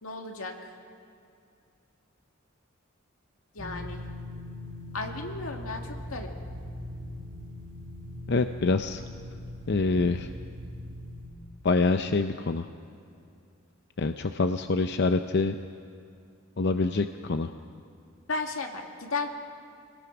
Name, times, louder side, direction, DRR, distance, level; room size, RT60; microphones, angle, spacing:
voice 1, 0.0-0.7 3.5-4.0 4.9-6.3 18.3-19.3, left 3 dB, 85° left, 3 dB, 2.2 m, -34 dB
sound 1, 3.6-11.3, left 1 dB, 55° right, 4.0 m, -40 dB
voice 2, 8.3-9.0 9.7-10.3 11.6-12.7 14.0-15.6 16.6-17.5, left 3 dB, 55° left, 8 dB, 0.6 m, -25 dB
27.0 x 19.5 x 6.1 m, 2.5 s
head